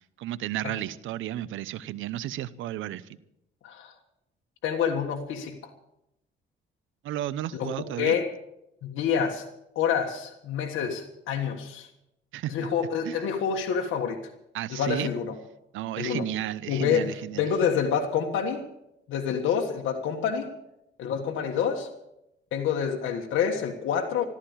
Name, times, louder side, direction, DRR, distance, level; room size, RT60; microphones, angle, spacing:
voice 1, 0.0-3.1 7.0-8.1 12.3-12.7 13.0-13.2 14.5-15.1 15.7-17.5, right 13 dB, 85° right, 17 dB, 0.8 m, -33 dB
voice 2, 3.6-3.9 4.6-5.6 7.5-7.7 8.0-8.3 8.8-9.4 9.8-11.9 12.5-14.2 14.7-15.3 16.0-16.3 16.7-18.7 19.1-20.5 21.0-21.9 22.5-24.2, left 7 dB, 85° left, 1 dB, 1.6 m, -27 dB
14.5 x 13.5 x 7.3 m, 0.85 s
cardioid pair, 90°, 20 cm